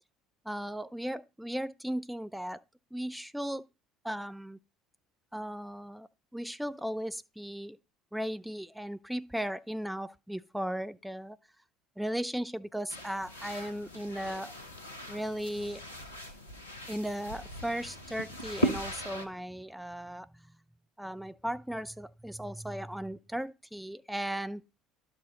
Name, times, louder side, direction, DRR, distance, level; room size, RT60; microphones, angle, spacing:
voice 1, 0.4-2.6 2.9-3.7 4.0-4.6 5.3-7.8 8.1-11.4 12.0-14.5 15.1-15.8 16.9-20.3 21.0-24.6, equal, ahead, 0.5 m, -36 dB
sound 1, 12.9-19.3, right 1 dB, 80° left, 0.9 m, -38 dB
11.5 x 4.4 x 4.0 m
figure-of-eight pair, 60°, 0 cm